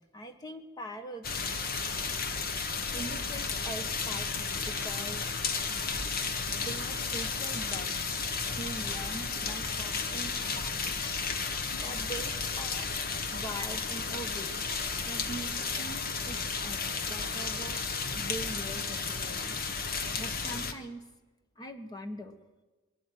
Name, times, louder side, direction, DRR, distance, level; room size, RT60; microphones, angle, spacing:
voice 1, 0.0-1.6 2.9-5.4 6.5-8.0 8.6-11.2 11.8-12.9 13.3-14.7 15.0-17.8 18.1-19.6 20.2-21.0 21.6-22.4, right 1 dB, 20° left, 6 dB, 1.5 m, -43 dB
sound 1, 1.2-20.7, left 4 dB, 50° left, 1.3 m, -33 dB
21.5 x 12.5 x 9.6 m, 1.2 s
head